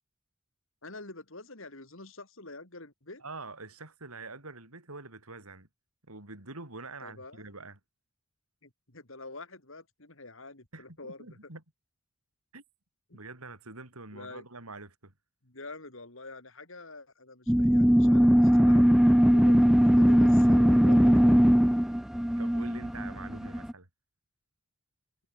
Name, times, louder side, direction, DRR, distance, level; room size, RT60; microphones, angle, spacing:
voice 1, 0.8-3.2 7.0-7.4 8.6-11.4 13.1-13.2 14.1-14.5 15.4-21.4, left 2 dB, 65° left, 3.7 m, -46 dB
voice 2, 3.2-5.7 6.1-7.8 10.7-11.6 12.5-12.6 13.1-15.1 22.4-23.9, right 3 dB, 85° right, 5.0 m, -45 dB
sound 1, 17.5-23.7, equal, ahead, 0.3 m, -20 dB
head